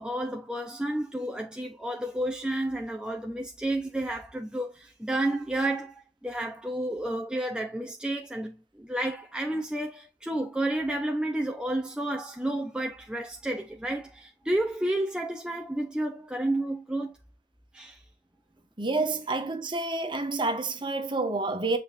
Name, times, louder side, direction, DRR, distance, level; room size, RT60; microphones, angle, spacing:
voice 1, 0.0-17.1 17.7-18.0, right 1 dB, 5° right, 0.6 m, -31 dB
voice 2, 18.8-21.8, right 3 dB, 25° right, 1.4 m, -29 dB
8.0 x 4.9 x 2.5 m
head